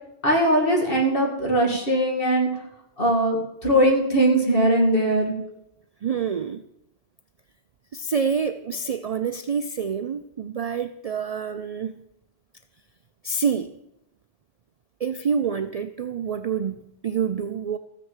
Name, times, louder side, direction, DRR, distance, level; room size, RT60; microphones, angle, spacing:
voice 1, 0.2-2.5 3.0-5.3, right 1 dB, 55° left, 0 dB, 2.6 m, -20 dB
voice 2, 6.0-6.6 7.9-11.9 13.2-13.7 15.0-17.8, right 6 dB, 50° right, 9 dB, 0.4 m, -27 dB
14.0 x 6.6 x 7.3 m, 0.83 s
omnidirectional pair, 1.1 m